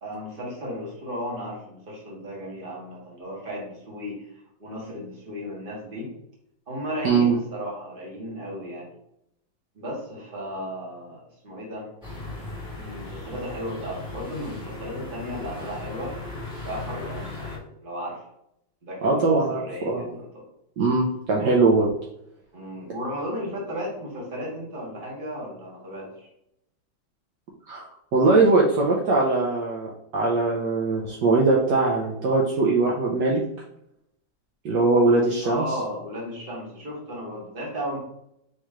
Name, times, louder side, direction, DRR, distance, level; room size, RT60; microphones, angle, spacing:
voice 1, 0.0-6.1 6.7-8.9 9.7-11.9 12.8-16.1 16.6-18.2 18.8-20.4 22.5-26.3 35.4-38.0, equal, 30° right, -4 dB, 1.6 m, -35 dB
voice 2, 7.0-7.3 19.0-19.6 19.8-20.0 20.8-21.9 27.7-27.8 28.1-33.4 34.6-35.6, right 3 dB, 70° right, -3 dB, 1.3 m, -21 dB
sound 1, 12.0-17.6, left 2 dB, 5° right, 1.5 m, -37 dB
4.5 x 3.0 x 3.6 m, 0.77 s
omnidirectional pair, 2.1 m